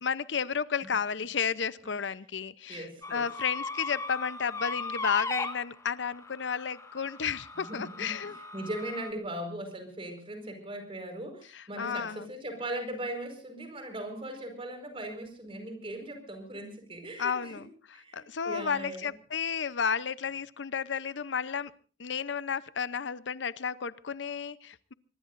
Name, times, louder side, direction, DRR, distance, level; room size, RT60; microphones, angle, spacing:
voice 1, 0.0-8.3 11.5-12.3 17.2-21.7 22.0-24.9, left 6 dB, 80° left, 17 dB, 0.7 m, -32 dB
voice 2, 2.7-3.2 7.7-17.6 17.9-19.1, right 1 dB, 30° right, 6 dB, 4.9 m, -39 dB
sound 1, 3.0-9.1, left 3 dB, 15° left, 1.6 m, -38 dB
24.0 x 21.0 x 2.6 m, 0.36 s
head